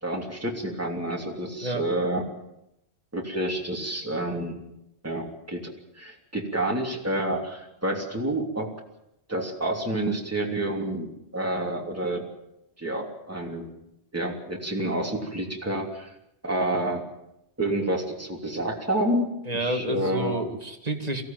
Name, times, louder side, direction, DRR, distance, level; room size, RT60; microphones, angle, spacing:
voice 1, 0.0-2.2 3.1-4.6 5.0-8.7 9.3-11.1 11.3-12.3 12.8-13.7 14.1-16.1 16.4-17.0 17.6-20.4, right 1 dB, 15° right, 0 dB, 3.1 m, -29 dB
voice 2, 19.5-21.2, right 1 dB, 35° right, 4 dB, 2.5 m, -29 dB
23.0 x 16.5 x 9.2 m, 0.85 s
omnidirectional pair, 1.1 m